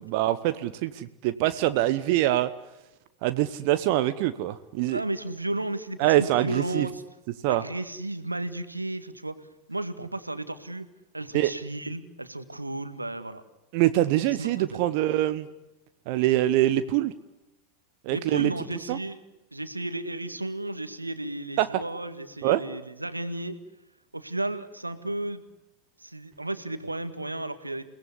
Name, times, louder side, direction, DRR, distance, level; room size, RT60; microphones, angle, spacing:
voice 1, 0.1-2.5 3.2-5.0 6.0-6.9 7.4-7.6 11.3-11.5 13.7-15.5 16.1-17.1 18.0-18.5 18.9-19.0 21.6-21.7 22.4-22.6, right 14 dB, 45° right, 12 dB, 1.0 m, -24 dB
voice 2, 4.9-7.0 7.5-10.9 11.1-13.4 14.4-14.8 18.1-19.2 19.5-23.6 24.1-25.4 26.0-27.8, right 2 dB, 85° right, 11 dB, 1.9 m, -33 dB
29.0 x 18.5 x 9.9 m, 0.96 s
figure-of-eight pair, 90°, 0 cm